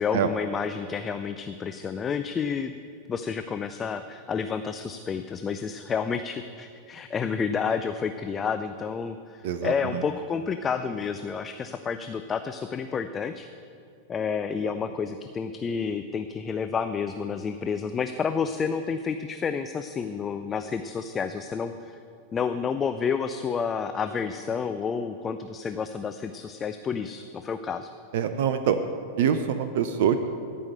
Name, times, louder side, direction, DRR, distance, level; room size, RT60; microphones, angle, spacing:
voice 1, 0.0-2.7 3.1-13.5 14.1-22.0 22.3-27.9, left 6 dB, 20° left, 9 dB, 0.4 m, -30 dB
voice 2, 9.4-10.0 28.1-28.8 29.2-30.3, right 8 dB, 55° right, 9 dB, 0.5 m, -25 dB
13.0 x 5.5 x 7.9 m, 2.5 s
figure-of-eight pair, 90°, 0 cm